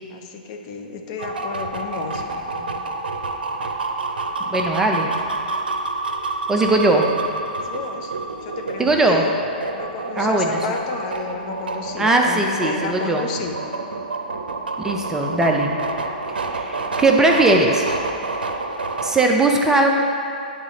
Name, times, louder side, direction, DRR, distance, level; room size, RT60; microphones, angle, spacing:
voice 1, 0.1-2.7 4.4-4.7 7.6-8.1 8.4-9.4 9.7-13.6, left 5 dB, 45° left, 3 dB, 0.7 m, -32 dB
sound 1, 1.2-19.3, right 3 dB, 85° right, 0.5 m, -28 dB
voice 2, 4.5-5.1 6.5-7.1 8.8-9.3 10.2-10.6 12.0-13.3 14.8-15.8 16.4-17.8 19.0-19.9, right 2 dB, 10° right, 1 dB, 0.5 m, -19 dB
9.5 x 3.7 x 4.0 m, 2.6 s
hypercardioid pair, 120°, 5 cm